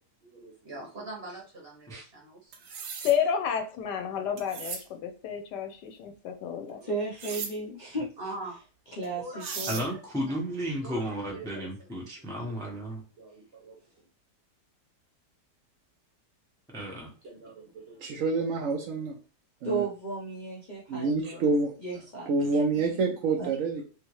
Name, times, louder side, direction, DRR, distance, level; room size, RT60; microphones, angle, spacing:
voice 1, 0.2-2.5 6.7-7.0 7.3-7.4 8.2-8.6 9.2-9.6 10.3-10.4 10.8-11.7 12.0-12.5 13.2-14.1 17.2-18.5 21.2-21.4, right 2 dB, 45° right, -1 dB, 1.0 m, -44 dB
sound 1, 2.5-3.2 4.4-4.8 7.2-7.5 9.0-9.1 9.4-9.9, right 6 dB, 85° right, 1.3 m, -37 dB
voice 2, 3.0-6.8, left 8 dB, 90° left, 7 dB, 1.2 m, -30 dB
voice 3, 6.8-8.1 9.0-9.9 19.6-21.4 21.8-22.6 23.0-23.1 23.4-23.5, right 3 dB, 60° left, -3 dB, 0.4 m, -34 dB
voice 4, 9.7-13.0 16.7-17.1, equal, 5° left, -2 dB, 0.4 m, -33 dB
voice 5, 18.0-19.2 19.6-19.8 20.9-21.7 22.3-23.8, right 3 dB, 65° right, 1 dB, 0.8 m, -27 dB
3.4 x 2.8 x 3.0 m, 0.36 s
omnidirectional pair, 1.8 m